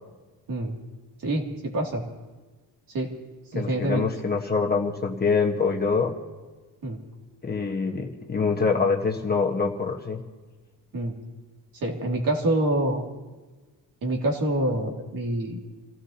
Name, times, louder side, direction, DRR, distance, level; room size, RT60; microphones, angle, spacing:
voice 1, 1.2-2.0 2.9-3.1 3.5-4.1 6.8-7.0 10.9-11.1 11.7-13.0 14.0-15.6, right 1 dB, 55° right, 0 dB, 2.6 m, -26 dB
voice 2, 3.5-6.1 7.4-10.2, left 4 dB, 25° left, 0 dB, 1.3 m, -25 dB
29.0 x 16.0 x 2.9 m, 1.3 s
wide cardioid pair, 165°, 40 cm